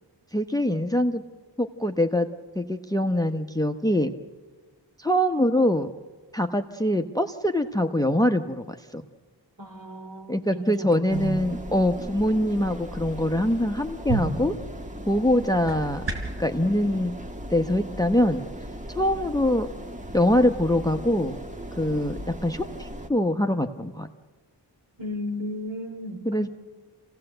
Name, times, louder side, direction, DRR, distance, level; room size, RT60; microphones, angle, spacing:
voice 1, 0.3-1.2 1.6-2.3 2.5-4.1 5.0-5.9 6.3-8.6 8.9-9.0 10.3-14.5 15.1-16.0 16.4-17.2 17.5-18.5 18.9-19.7 20.1-21.4 21.8-24.1 26.2-26.5, left 1 dB, 10° left, 7 dB, 0.9 m, -23 dB
voice 2, 9.6-11.4 25.0-26.5, equal, 50° right, 4 dB, 2.9 m, -34 dB
sound 1, 11.1-23.1, equal, 15° right, 1.4 m, -38 dB
sound 2, 14.0-16.5, right 4 dB, 75° right, 4.0 m, -33 dB
26.5 x 17.0 x 7.9 m, 1.4 s
cardioid pair, 45°, 44 cm